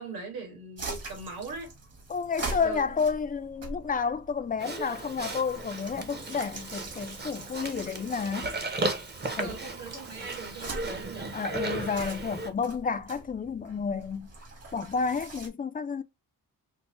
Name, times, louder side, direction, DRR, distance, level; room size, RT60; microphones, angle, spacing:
voice 1, 0.0-1.7 2.6-3.0 9.2-11.3, right 4 dB, 90° right, 1.8 m, -40 dB
sound 1, 0.8-15.5, right 2 dB, 45° right, 1.3 m, -43 dB
voice 2, 2.1-8.5 9.4-9.6 11.3-14.3 14.7-16.0, left 5 dB, 25° left, 0.4 m, -31 dB
Livestock farm animals working animals, 4.6-12.5, right 2 dB, 30° right, 0.7 m, -35 dB
4.4 x 2.1 x 2.9 m
wide cardioid pair, 105°, 36 cm